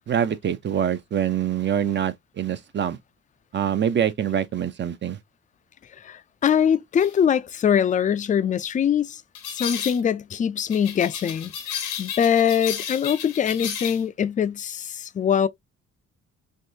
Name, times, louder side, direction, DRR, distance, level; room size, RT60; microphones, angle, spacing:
voice 1, 0.1-3.0 3.5-5.2, right 9 dB, 40° right, 0.6 m, -25 dB
voice 2, 6.0-9.2 9.5-15.5, left 8 dB, 25° left, 0.4 m, -23 dB
sound 1, 7.0-7.2 9.3-10.0 10.7-14.0, left 8 dB, 85° left, 1.1 m, -33 dB
3.5 x 2.6 x 2.7 m
cardioid pair, 90°, 30 cm